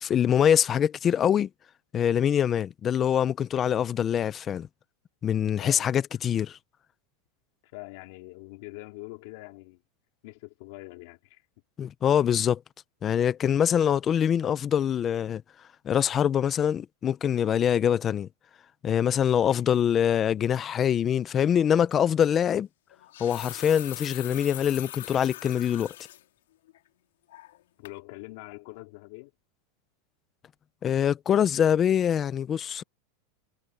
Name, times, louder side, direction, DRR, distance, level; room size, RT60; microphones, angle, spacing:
voice 1, 0.0-1.5 1.9-4.7 5.2-6.6 11.8-12.6 13.0-15.4 15.8-18.3 18.8-22.7 23.2-25.9 30.8-32.8, left 9 dB, 15° left, 0.4 m, -24 dB
voice 2, 5.6-6.0 7.7-9.8 10.2-11.4 19.5-19.7 27.8-29.3, left 23 dB, 45° left, 4.2 m, -44 dB
sound 1, 21.7-21.9 22.9-26.2 26.7-26.8 27.3-27.6 27.9-28.0, left 14 dB, 85° left, 3.4 m, -41 dB
supercardioid pair, 180°, 0 cm